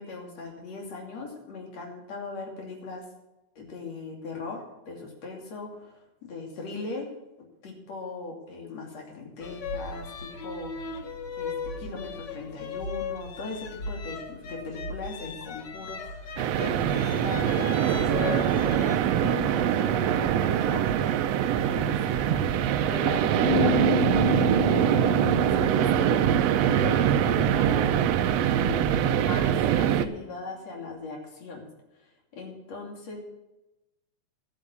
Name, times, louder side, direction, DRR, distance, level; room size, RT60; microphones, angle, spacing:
voice 1, 0.0-3.1 3.6-7.1 7.6-11.0 11.4-20.8 21.6-22.5 22.9-31.7 32.3-33.2, left 3 dB, 55° left, 1 dB, 3.8 m, -39 dB
sound 1, 9.4-19.0, left 4 dB, 70° left, 1.0 m, -37 dB
sound 2, 16.4-30.1, right 10 dB, 75° right, 1.6 m, -23 dB
sound 3, 23.4-28.6, left 11 dB, 90° left, 5.6 m, -32 dB
12.5 x 8.8 x 6.9 m, 0.99 s
omnidirectional pair, 3.6 m